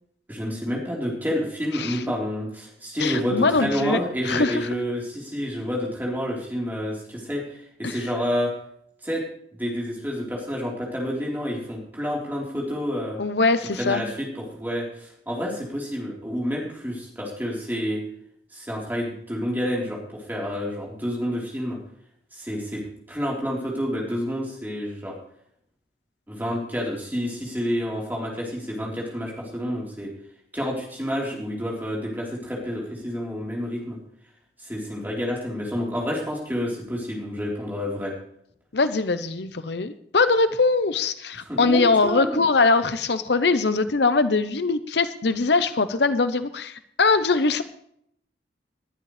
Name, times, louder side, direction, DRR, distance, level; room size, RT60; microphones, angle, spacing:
voice 1, 0.3-8.5 9.0-9.2 9.5-13.2 13.8-18.0 18.5-21.8 22.3-22.8 23.1-25.1 26.3-30.1 30.5-34.0 34.6-38.1 41.5-42.4, equal, 10° right, -3 dB, 4.0 m, -29 dB
voice 2, 3.0-4.7 7.8-8.0 13.2-14.0 38.7-47.6, left 3 dB, 70° left, 11 dB, 0.8 m, -22 dB
20.0 x 11.5 x 3.3 m, 0.70 s
head